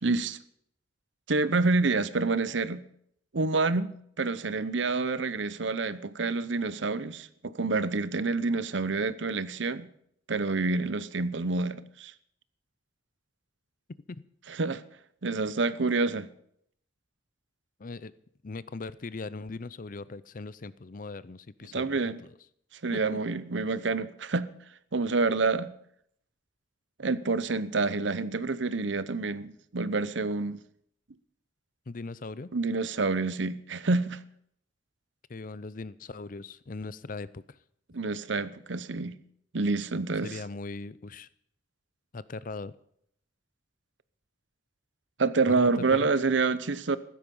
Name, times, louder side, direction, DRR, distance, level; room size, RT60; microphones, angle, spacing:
voice 1, 0.0-0.4 1.3-2.8 3.3-3.9 4.2-9.9 10.3-12.1 14.5-14.8 15.2-16.3 21.7-22.2 22.8-24.5 24.9-25.7 27.0-30.6 32.5-34.2 37.9-39.2 39.5-40.4 45.2-47.0, right 3 dB, 65° right, 0.8 m, -28 dB
voice 2, 17.8-18.1 18.4-22.0 22.9-23.0 31.9-32.5 35.3-37.6 40.2-41.3 42.1-42.7 45.5-46.1, left 3 dB, 45° left, 0.6 m, -39 dB
15.0 x 13.0 x 5.4 m
head